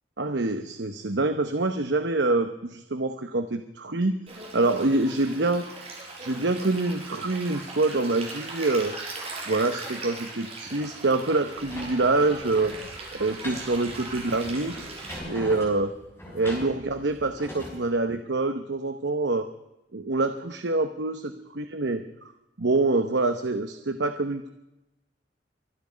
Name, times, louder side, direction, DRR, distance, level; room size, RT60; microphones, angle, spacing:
voice 1, 0.2-4.2 4.5-5.7 6.2-9.0 9.5-12.8 13.2-14.9 15.3-16.0 16.3-19.5 19.9-22.0 22.6-24.5, right 2 dB, 70° right, 8 dB, 1.0 m, -26 dB
Stream, 4.3-15.2, right 3 dB, 35° right, 5.7 m, -39 dB
sound 1, 11.6-17.8, equal, 15° left, 6.4 m, -42 dB
24.5 x 11.0 x 5.2 m, 0.91 s
head